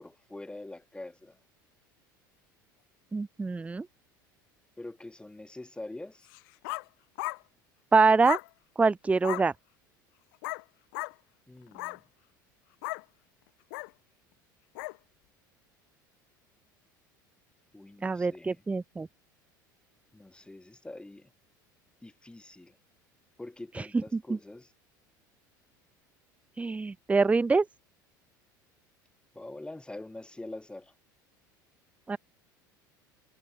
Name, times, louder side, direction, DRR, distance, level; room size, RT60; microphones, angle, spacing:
voice 1, 0.0-1.4 4.8-6.3 11.5-12.0 17.7-18.6 20.1-21.3 22.0-22.8 23.4-24.7 29.3-30.9, left 2 dB, 10° left, 2.5 m, -44 dB
voice 2, 3.1-3.8 7.9-8.4 8.8-9.5 18.0-19.1 23.7-23.9 26.6-27.6 32.1-32.2, right 4 dB, 10° right, 0.4 m, -25 dB
sound 1, 6.3-6.9 7.2-7.4 8.2-8.5 9.2-9.5 10.4-10.6 10.9-11.1 11.7-12.0 12.8-13.0 13.7-13.9 14.8-15.0, left 27 dB, 65° left, 3.5 m, -35 dB
hypercardioid pair, 75°, 11 cm